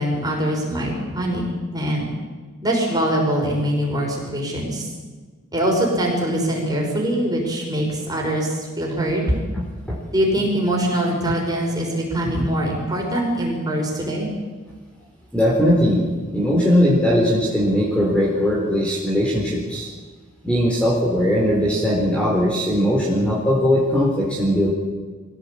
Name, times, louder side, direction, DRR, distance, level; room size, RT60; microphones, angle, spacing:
voice 1, 0.0-1.4 1.7-2.1 2.6-4.9 5.5-9.4 10.1-14.3, right 1 dB, 20° right, -2 dB, 6.0 m, -23 dB
voice 2, 15.3-16.0 16.3-19.9 20.4-24.7, equal, 5° left, -4 dB, 4.0 m, -19 dB
23.0 x 16.0 x 8.7 m, 1.4 s
head